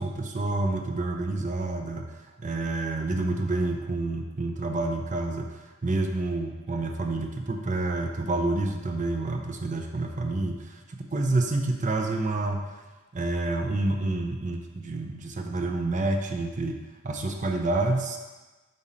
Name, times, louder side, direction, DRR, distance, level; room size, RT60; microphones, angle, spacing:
voice 1, 0.0-12.8 13.1-16.8 17.0-18.2, right 2 dB, 40° right, 3 dB, 0.6 m, -28 dB
5.3 x 4.9 x 4.2 m, 1.2 s
head